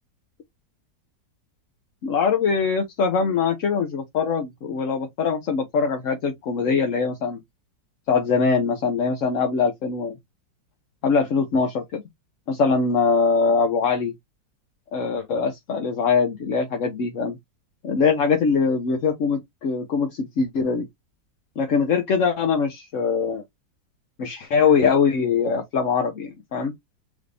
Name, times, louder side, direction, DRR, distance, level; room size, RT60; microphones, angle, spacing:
voice 1, 2.0-7.4 8.1-10.2 11.0-12.0 12.5-14.1 14.9-17.4 17.8-20.9 21.6-23.4 24.2-26.7, left 5 dB, 55° left, 1.0 m, -22 dB
5.1 x 2.6 x 3.3 m
omnidirectional pair, 1.9 m